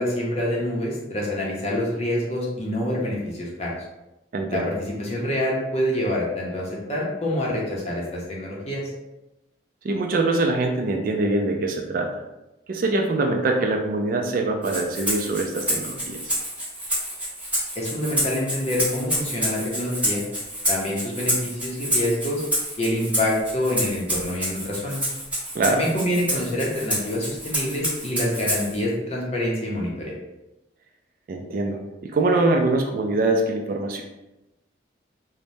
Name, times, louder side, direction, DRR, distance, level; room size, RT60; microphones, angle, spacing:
voice 1, 0.0-3.7 4.5-8.9 17.8-20.2 20.7-22.4 22.8-25.1 25.7-30.1, left 1 dB, 35° left, -4 dB, 0.6 m, -26 dB
voice 2, 4.3-4.8 9.8-12.1 12.7-16.3 25.5-25.8 31.3-34.0, right 2 dB, 50° right, 2 dB, 0.3 m, -23 dB
Rattle (instrument), 14.6-28.8, equal, 10° right, 0.9 m, -28 dB
3.1 x 2.1 x 2.6 m, 0.96 s
head